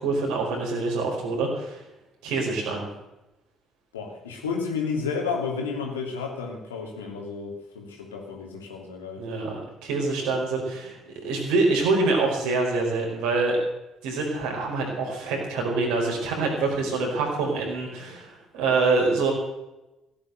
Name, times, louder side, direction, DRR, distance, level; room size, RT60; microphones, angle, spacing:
voice 1, 0.0-1.8 2.2-2.9 9.2-13.6 14.0-19.3, right 3 dB, 70° right, 0 dB, 4.5 m, -25 dB
voice 2, 3.9-9.2, left 5 dB, 80° left, 1 dB, 2.9 m, -31 dB
16.0 x 8.7 x 7.7 m, 0.98 s
figure-of-eight pair, 45°, 0 cm